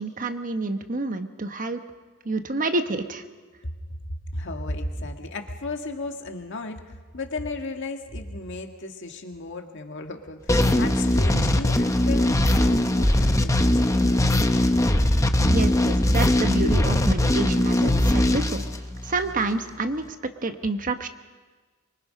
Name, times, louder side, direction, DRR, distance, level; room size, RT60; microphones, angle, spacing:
voice 1, 0.0-1.8 2.2-3.2 11.4-11.5 15.5-18.6 19.0-20.2 20.4-21.1, right 3 dB, 40° right, 8 dB, 1.1 m, -28 dB
voice 2, 4.3-14.2 15.4-15.6, left 2 dB, 60° left, 4 dB, 1.9 m, -33 dB
sound 1, 10.5-19.4, left 1 dB, 15° left, 1.0 m, -21 dB
24.5 x 23.5 x 5.3 m, 1.4 s
head